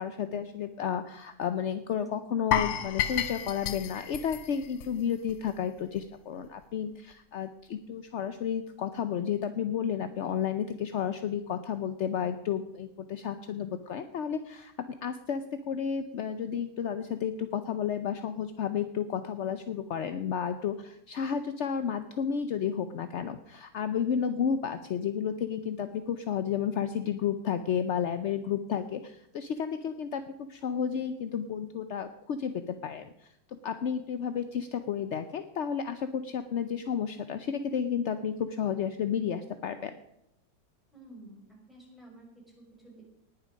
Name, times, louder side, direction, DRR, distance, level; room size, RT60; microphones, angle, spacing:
voice 1, 0.0-14.7 15.0-30.2 30.5-33.1 33.5-39.9, left 8 dB, 60° left, 9 dB, 0.7 m, -32 dB
sound 1, 2.5-5.5 5.8-6.0 6.4-6.5, left 9 dB, 90° left, 1.5 m, -31 dB
voice 2, 40.9-43.0, right 1 dB, ahead, -3 dB, 5.2 m, -52 dB
19.0 x 7.4 x 5.2 m, 0.80 s
omnidirectional pair, 1.9 m